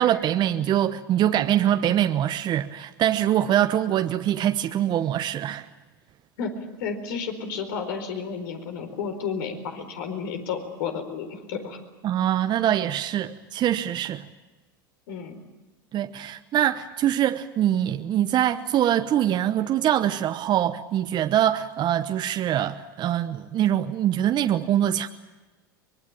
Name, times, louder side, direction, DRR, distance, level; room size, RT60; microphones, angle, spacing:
voice 1, 0.0-5.7 12.0-14.3 15.9-25.1, right 11 dB, 40° right, 9 dB, 1.0 m, -23 dB
voice 2, 6.8-11.8 15.1-15.4, left 6 dB, 70° left, 6 dB, 4.5 m, -32 dB
24.0 x 21.5 x 8.8 m, 1.2 s
hypercardioid pair, 90°, 11 cm